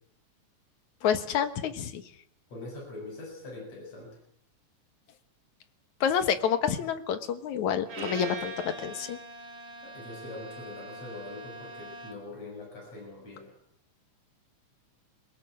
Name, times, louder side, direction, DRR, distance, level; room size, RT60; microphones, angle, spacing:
voice 1, 1.0-2.0 6.0-9.2, left 8 dB, 75° left, 10 dB, 2.7 m, -28 dB
voice 2, 2.5-4.2 9.8-13.6, left 2 dB, 60° left, 1 dB, 8.2 m, -43 dB
Bowed string instrument, 7.9-12.4, right 2 dB, 90° right, 5.7 m, -42 dB
22.5 x 19.0 x 7.7 m, 0.65 s
omnidirectional pair, 3.4 m